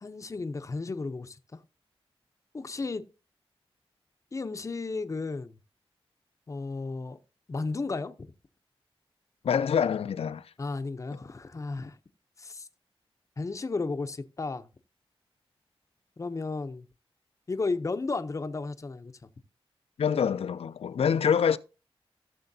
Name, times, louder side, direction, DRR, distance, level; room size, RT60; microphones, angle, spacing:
voice 1, 0.0-1.6 2.5-3.0 4.3-5.6 6.5-7.2 7.5-8.3 10.6-12.0 12.4-12.7 13.4-14.7 16.2-16.8 17.5-19.1, left 3 dB, 30° left, 0.6 m, -33 dB
voice 2, 9.4-10.5 20.0-21.6, left 7 dB, 85° left, 0.4 m, -25 dB
16.0 x 6.8 x 2.7 m
wide cardioid pair, 125°, 10 cm